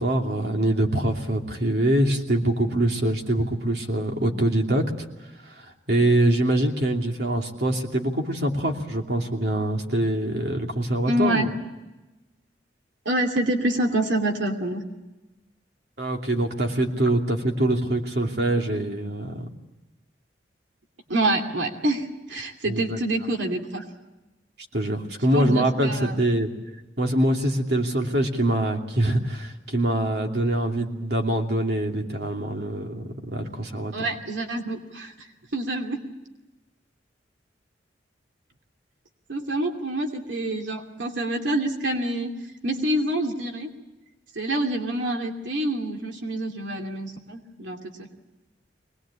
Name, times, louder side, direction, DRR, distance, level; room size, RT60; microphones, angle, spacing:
voice 1, 0.0-5.1 5.5-11.5 16.0-19.5 22.7-23.0 24.7-26.5 27.0-33.9, right 1 dB, 60° right, 2 dB, 2.8 m, -24 dB
voice 2, 11.0-11.6 13.0-14.8 21.1-23.8 25.3-26.2 33.9-35.1 35.5-36.0 39.3-42.3 42.6-43.7 44.3-47.9, right 1 dB, 90° right, 3 dB, 2.7 m, -26 dB
24.0 x 20.0 x 8.6 m, 1.0 s
head